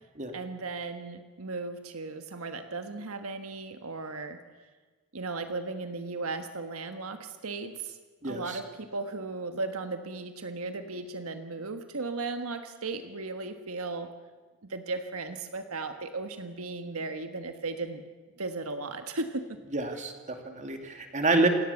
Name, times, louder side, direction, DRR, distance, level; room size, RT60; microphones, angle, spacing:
voice 1, 0.3-4.4 5.1-8.0 8.2-14.1 14.7-18.0 18.4-19.4, right 3 dB, 85° right, 7 dB, 1.4 m, -36 dB
voice 2, 8.2-8.6 19.7-21.5, right 2 dB, 35° right, 5 dB, 2.6 m, -28 dB
28.0 x 17.5 x 7.2 m, 1.4 s
head